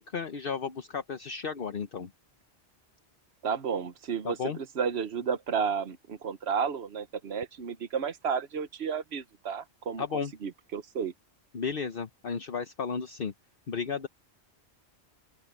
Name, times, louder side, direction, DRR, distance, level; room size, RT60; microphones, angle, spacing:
voice 1, 0.0-2.1 4.2-4.6 10.0-10.3 11.5-13.3 13.7-14.1, left 6 dB, 55° left, 1.1 m, -33 dB
voice 2, 3.4-11.1, right 6 dB, 70° right, 1.3 m, -32 dB
open air
omnidirectional pair, 1.1 m